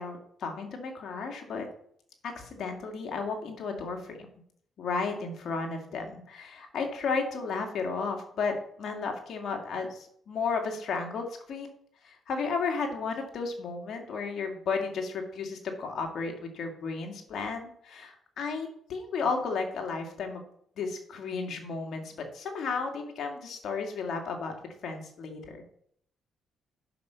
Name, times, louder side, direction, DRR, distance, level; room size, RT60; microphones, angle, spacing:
voice 1, 0.0-1.6 2.2-4.2 4.8-11.7 12.0-20.4 20.8-24.5 24.8-25.6, left 4 dB, 65° left, 3 dB, 2.2 m, -33 dB
9.3 x 5.9 x 5.8 m, 0.66 s
cardioid pair, 90°, 0 cm